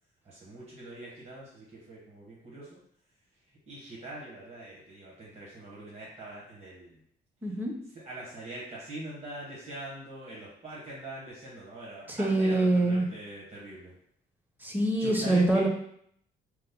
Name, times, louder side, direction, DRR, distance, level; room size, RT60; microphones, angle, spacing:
voice 1, 0.2-2.8 3.7-7.0 7.9-13.9 15.0-15.7, right 1 dB, 35° right, -6 dB, 1.0 m, -43 dB
voice 2, 7.4-7.7 12.1-13.1 14.6-15.7, right 2 dB, 10° right, 0 dB, 0.5 m, -25 dB
2.9 x 2.0 x 3.5 m, 0.69 s
cardioid pair, 110°, 19 cm